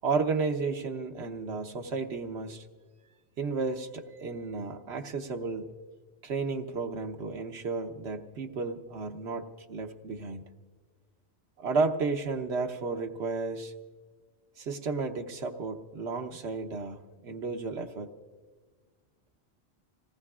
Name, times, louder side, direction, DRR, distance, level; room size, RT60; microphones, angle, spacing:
voice 1, 0.0-2.6 3.4-5.7 6.2-10.4 11.6-13.7 14.6-18.1, right 4 dB, 90° right, 4 dB, 1.2 m, -33 dB
27.0 x 18.0 x 2.4 m, 1.4 s
omnidirectional pair, 1.1 m